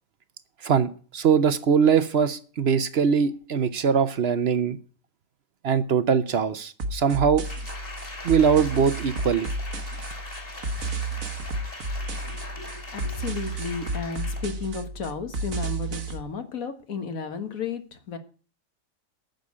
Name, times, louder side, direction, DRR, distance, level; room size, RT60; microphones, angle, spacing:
voice 1, 0.6-4.8 5.6-7.4 8.2-9.5, right 6 dB, 55° right, 0.9 m, -22 dB
sound 1, 6.8-16.2, right 2 dB, 75° right, 1.6 m, -32 dB
Applause, 7.4-14.6 15.0-15.1, left 2 dB, 40° left, 2.5 m, -41 dB
voice 2, 12.0-18.2, left 5 dB, 85° left, 1.8 m, -34 dB
9.4 x 6.5 x 8.5 m
omnidirectional pair, 1.4 m